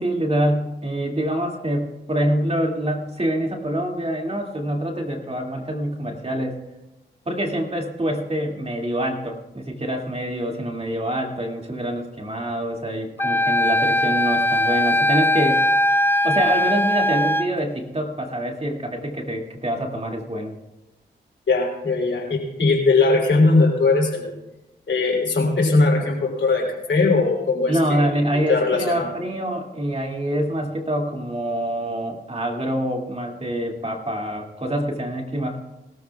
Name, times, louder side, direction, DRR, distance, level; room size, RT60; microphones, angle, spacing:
voice 1, 0.0-6.6 7.3-15.8 16.2-20.6 27.7-35.6, right 1 dB, 30° right, 2 dB, 2.3 m, -25 dB
Wind instrument woodwind instrument, 13.2-17.5, left 1 dB, 10° left, 0.4 m, -20 dB
voice 2, 21.5-24.3 24.9-28.1 28.5-29.1, left 3 dB, 70° left, 0 dB, 3.3 m, -20 dB
20.0 x 13.0 x 2.4 m, 0.98 s
cardioid pair, 45°, 20 cm